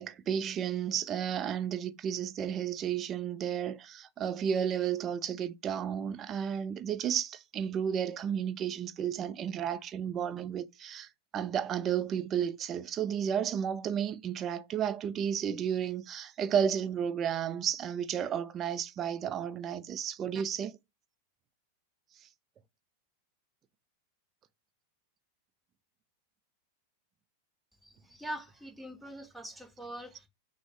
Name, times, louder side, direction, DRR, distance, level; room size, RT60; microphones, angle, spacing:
voice 1, 0.0-20.8, right 8 dB, 30° right, 0.5 m, -32 dB
voice 2, 27.8-30.3, right 1 dB, 5° right, 0.9 m, -43 dB
6.1 x 2.1 x 3.3 m
figure-of-eight pair, 90°, 0 cm